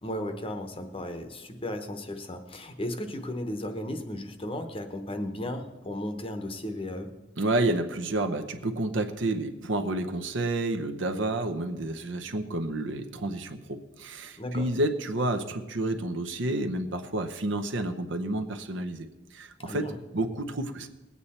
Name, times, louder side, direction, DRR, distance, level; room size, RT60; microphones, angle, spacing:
voice 1, 0.0-7.1 14.4-14.7 19.7-20.0, left 1 dB, 25° left, 7 dB, 0.9 m, -35 dB
voice 2, 7.4-20.9, right 2 dB, 65° right, 6 dB, 0.8 m, -30 dB
20.0 x 8.5 x 4.3 m, 1.1 s
head